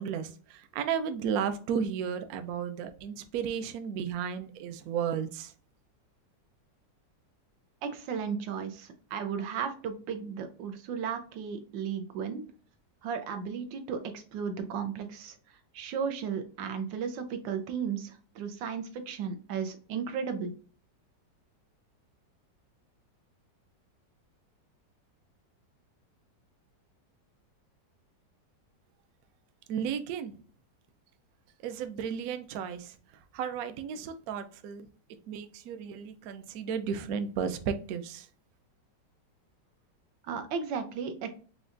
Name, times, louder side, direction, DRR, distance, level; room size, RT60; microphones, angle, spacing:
voice 1, 0.0-5.5 29.7-30.4 31.6-32.9 33.3-34.9 35.3-38.3, right 7 dB, 70° right, 0.8 m, -34 dB
voice 2, 7.8-12.4 13.0-20.5 40.2-41.3, right 6 dB, 90° right, 1.4 m, -35 dB
5.2 x 2.4 x 2.5 m
omnidirectional pair, 2.0 m